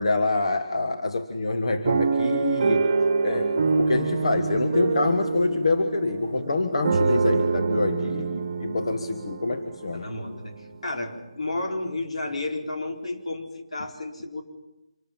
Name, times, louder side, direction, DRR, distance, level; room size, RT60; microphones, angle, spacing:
voice 1, 0.0-2.9 3.2-10.1, left 3 dB, 65° left, 7 dB, 1.5 m, -26 dB
sound 1, 1.8-10.0 10.6-10.7 10.9-11.2, right 4 dB, 35° right, 1.2 m, -25 dB
voice 2, 3.3-3.7 9.9-14.4, left 2 dB, 85° left, 3 dB, 4.4 m, -32 dB
26.0 x 13.0 x 9.1 m, 1.0 s
hypercardioid pair, 180°, 3 cm